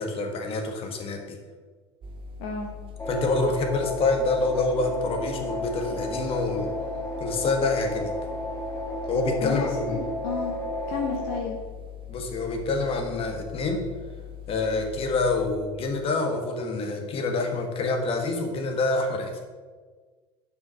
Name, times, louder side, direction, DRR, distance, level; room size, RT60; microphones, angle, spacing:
voice 1, 0.0-1.4 3.1-6.7 7.2-8.1 9.1-10.0 12.1-13.8 14.5-19.4, left 3 dB, 45° left, 3 dB, 1.6 m, -27 dB
sound 1, 2.0-15.6, left 9 dB, 40° right, 0.8 m, -41 dB
voice 2, 2.4-2.7 9.4-10.5 10.9-11.6, left 5 dB, 65° left, 0 dB, 1.0 m, -32 dB
sound 2, 3.0-11.4, equal, 20° left, 2.0 m, -33 dB
5.6 x 5.3 x 6.2 m, 1.4 s
hypercardioid pair, 75°, 14 cm